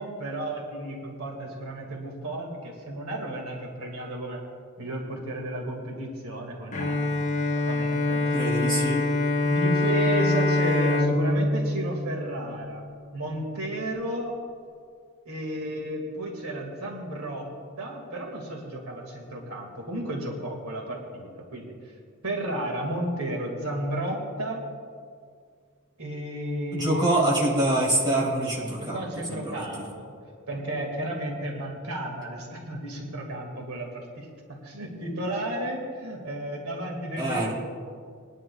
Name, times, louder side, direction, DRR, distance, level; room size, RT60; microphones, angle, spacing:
voice 1, 0.0-4.4 4.8-8.4 9.4-12.8 13.1-14.4 15.3-17.5 17.8-21.9 22.2-24.7 26.0-27.3 28.8-30.1 30.5-37.5, right 1 dB, 75° right, -1 dB, 2.0 m, -33 dB
Bowed string instrument, 6.7-12.9, left 2 dB, 35° left, 0.8 m, -25 dB
voice 2, 8.3-9.1 26.7-29.0 29.3-29.8 37.2-37.5, right 1 dB, 20° right, -6 dB, 3.2 m, -25 dB
21.5 x 11.0 x 2.3 m, 2.1 s
head